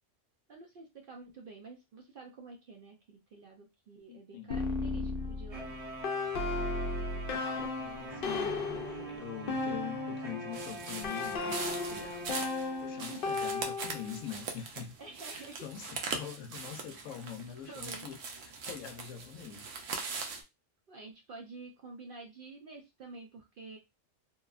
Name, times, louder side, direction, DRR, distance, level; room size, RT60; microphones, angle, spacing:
voice 1, 0.5-5.7 12.9-13.3 15.0-15.6 17.1-17.2 17.6-18.1 20.9-23.8, right 3 dB, 60° right, 0.6 m, -49 dB
voice 2, 4.1-4.6 7.7-15.0 15.3-19.7, left 8 dB, 85° left, 0.9 m, -44 dB
sound 1, 4.5-10.4 11.0-14.2, left 3 dB, 60° left, 0.6 m, -35 dB
sound 2, 5.5-13.3, right 1 dB, 35° right, 0.8 m, -44 dB
sound 3, 10.5-20.4, right 4 dB, 80° right, 1.0 m, -41 dB
2.9 x 2.2 x 2.3 m
omnidirectional pair, 1.3 m